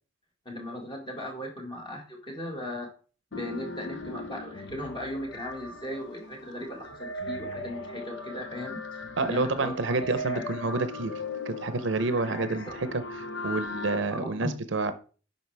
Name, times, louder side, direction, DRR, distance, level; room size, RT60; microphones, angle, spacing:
voice 1, 0.4-2.9 3.3-10.4 12.3-12.7 14.1-14.5, left 1 dB, 25° left, 1 dB, 1.7 m, -37 dB
sound 1, 3.3-14.0, left 2 dB, 60° left, 0.8 m, -38 dB
voice 2, 9.2-11.1 11.5-14.9, right 3 dB, 65° right, 11 dB, 0.7 m, -29 dB
8.8 x 5.5 x 3.3 m, 0.38 s
head